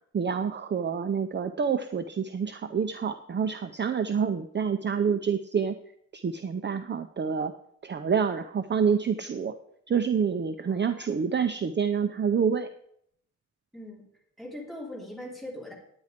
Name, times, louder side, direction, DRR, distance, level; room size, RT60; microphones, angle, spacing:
voice 1, 0.1-5.8 6.1-7.5 7.8-9.5 9.9-12.7, right 6 dB, 35° right, 8 dB, 0.5 m, -27 dB
voice 2, 10.6-11.1 13.7-14.0 14.4-15.7, left 1 dB, ahead, -4 dB, 3.2 m, -41 dB
9.7 x 9.5 x 5.1 m, 0.69 s
wide cardioid pair, 170°, 30 cm